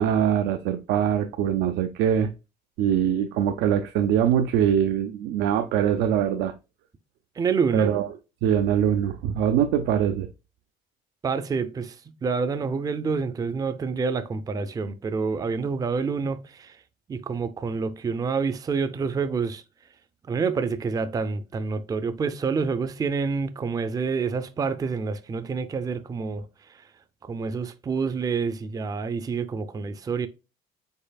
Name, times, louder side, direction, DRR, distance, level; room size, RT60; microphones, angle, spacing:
voice 1, 0.0-2.3 2.8-6.5 7.7-8.1 8.4-10.3, right 9 dB, 85° right, 0.4 m, -23 dB
voice 2, 7.4-7.9 11.2-12.0 12.2-16.8 17.1-19.6 20.3-26.5 27.2-30.3, right 5 dB, 20° right, 0.4 m, -27 dB
5.4 x 3.9 x 2.3 m
cardioid pair, 110°, 17 cm